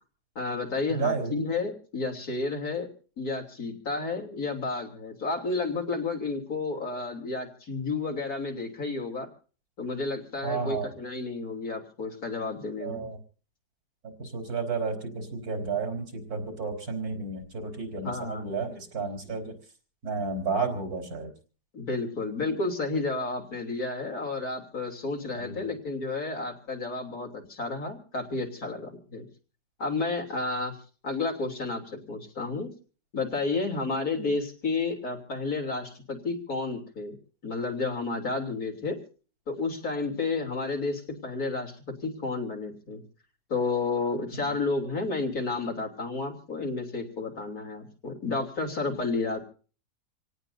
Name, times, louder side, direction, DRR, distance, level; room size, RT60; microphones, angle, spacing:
voice 1, 0.4-2.9 3.2-9.3 9.8-13.1 18.0-18.6 21.7-29.3 29.8-30.8 31.0-32.7 33.1-37.2 37.4-39.0 39.5-41.8 42.0-43.0 43.5-49.4, left 3 dB, 65° left, 2 dB, 3.7 m, -31 dB
voice 2, 0.9-1.5 10.4-10.9 12.8-13.2 14.0-19.5 20.0-21.3 25.3-25.7 44.3-44.6, right 4 dB, 65° right, 7 dB, 4.6 m, -32 dB
27.5 x 18.0 x 2.7 m, 0.39 s
omnidirectional pair, 1.7 m